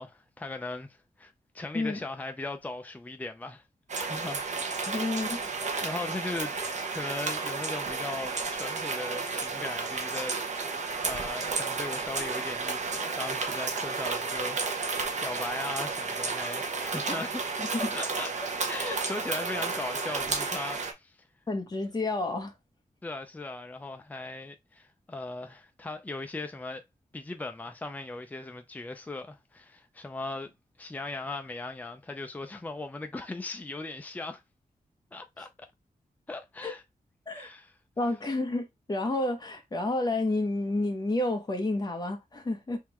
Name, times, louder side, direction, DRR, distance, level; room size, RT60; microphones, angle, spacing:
voice 1, 0.0-3.6 4.0-4.4 4.9-5.1 5.8-6.6 6.9-10.7 11.0-14.6 14.9-17.4 17.9-18.3 18.7-21.1 23.0-26.8 27.1-30.5 30.8-34.4 35.1-35.7 36.3-36.8 37.3-37.7, left 2 dB, 10° left, 0.4 m, -38 dB
sound 1, 3.9-20.9, right 4 dB, 55° right, 0.8 m, -32 dB
voice 2, 4.9-5.4 17.2-17.3 17.6-17.9 18.9-19.0 21.5-22.5 36.6-36.7 37.3-37.5 38.0-42.8, left 2 dB, 30° left, 0.9 m, -30 dB
3.6 x 3.3 x 3.0 m
wide cardioid pair, 165°, 14 cm